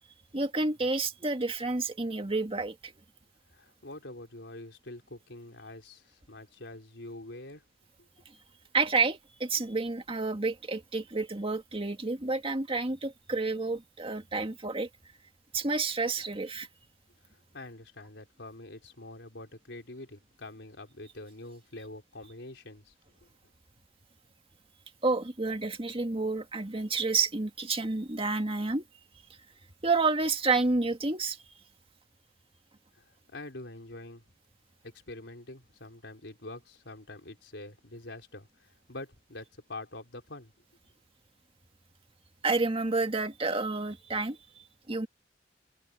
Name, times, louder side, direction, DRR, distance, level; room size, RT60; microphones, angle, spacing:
voice 1, 0.3-2.9 8.7-14.9 15.5-16.7 25.0-28.8 29.8-31.4 42.4-45.1, right 3 dB, 30° right, 1.8 m, -29 dB
voice 2, 3.5-7.6 8.0-8.1 17.2-22.9 23.2-23.3 32.9-34.2 34.8-40.5, left 2 dB, 85° left, 4.0 m, -45 dB
head